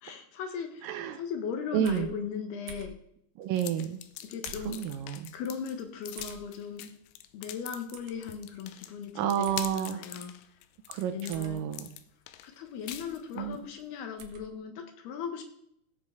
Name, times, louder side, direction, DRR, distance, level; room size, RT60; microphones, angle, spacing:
voice 1, 0.0-0.9 1.1-3.0 4.2-4.8 5.3-6.9 7.3-10.3 11.1-11.7 12.4-15.4, left 7 dB, 75° left, 5 dB, 3.3 m, -38 dB
voice 2, 0.8-1.2 1.7-2.1 3.4-4.0 4.7-5.3 9.2-10.0 10.9-11.9 13.4-13.6, right 9 dB, 85° right, 9 dB, 2.0 m, -30 dB
sound 1, 1.9-2.1 2.7-3.0 4.4-4.8 6.2-6.4 7.9-8.1 9.4-9.7 11.3-11.6 12.9-13.1 14.2-14.4, right 4 dB, 70° right, 2.9 m, -46 dB
sound 2, 3.5-13.6, left 12 dB, 90° left, 2.9 m, -44 dB
17.0 x 7.6 x 4.7 m, 0.72 s
omnidirectional pair, 4.9 m